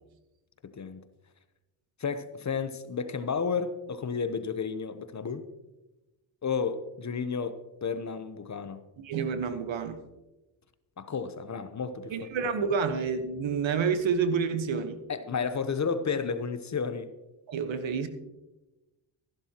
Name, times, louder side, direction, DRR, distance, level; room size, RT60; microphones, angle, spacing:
voice 1, 2.0-5.5 6.4-8.9 11.0-12.3 15.1-17.1, left 5 dB, 35° left, 0.9 m, -32 dB
voice 2, 9.0-10.0 12.1-15.0 17.5-18.1, right 6 dB, 65° right, 1.3 m, -29 dB
14.0 x 11.5 x 2.9 m
cardioid pair, 80°, 49 cm